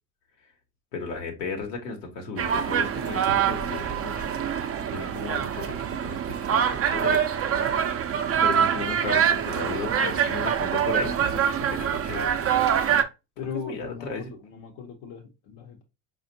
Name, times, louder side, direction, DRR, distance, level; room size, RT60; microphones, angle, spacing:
voice 1, 0.9-4.3 4.9-7.2 8.4-12.3 13.7-14.3, left 4 dB, 80° left, 1.2 m, -35 dB
sound 1, 2.4-13.0, right 8 dB, 30° right, 0.5 m, -25 dB
voice 2, 13.4-15.8, left 6 dB, 60° left, 1.0 m, -38 dB
4.9 x 2.6 x 2.7 m
hypercardioid pair, 70°, 49 cm